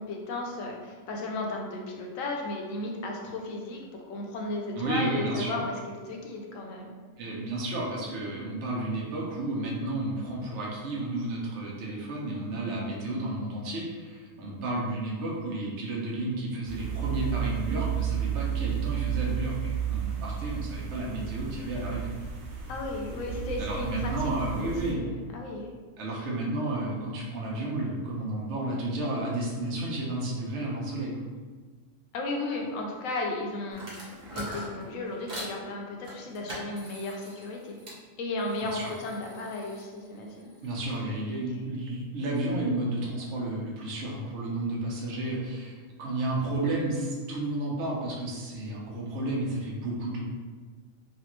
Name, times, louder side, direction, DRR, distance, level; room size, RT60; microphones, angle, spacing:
voice 1, 0.0-6.9 22.7-25.1 25.3-25.7 26.1-26.3 32.1-37.8 38.2-40.5, left 2 dB, 80° left, 1 dB, 1.0 m, -35 dB
voice 2, 4.7-5.6 7.2-22.1 23.6-25.0 26.0-31.2 38.6-38.9 40.6-50.2, right 1 dB, 65° right, -3 dB, 1.0 m, -32 dB
sound 1, 16.7-24.9, right 9 dB, 85° right, 1.0 m, -32 dB
sound 2, 33.7-35.6 36.0-38.0 38.4-41.0, equal, 40° right, 0.7 m, -43 dB
3.2 x 2.4 x 2.9 m, 1.4 s
omnidirectional pair, 1.4 m